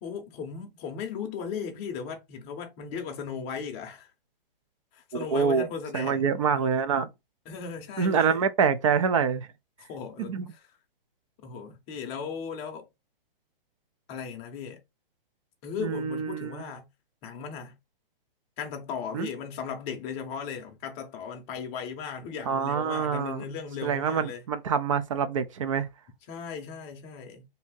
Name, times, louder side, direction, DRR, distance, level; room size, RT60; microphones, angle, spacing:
voice 1, 0.0-4.1 4.9-6.2 7.5-8.4 9.9-10.6 11.4-12.9 14.1-14.8 15.6-16.9 17.2-17.7 18.6-24.4 26.3-27.4, left 6 dB, 20° left, 0.7 m, -37 dB
voice 2, 5.1-5.7 5.9-7.1 8.0-9.5 10.2-10.5 15.8-16.6 19.1-19.3 22.5-23.4 23.8-25.9, right 6 dB, 35° right, 0.4 m, -26 dB
2.8 x 2.6 x 3.7 m
hypercardioid pair, 155°, 29 cm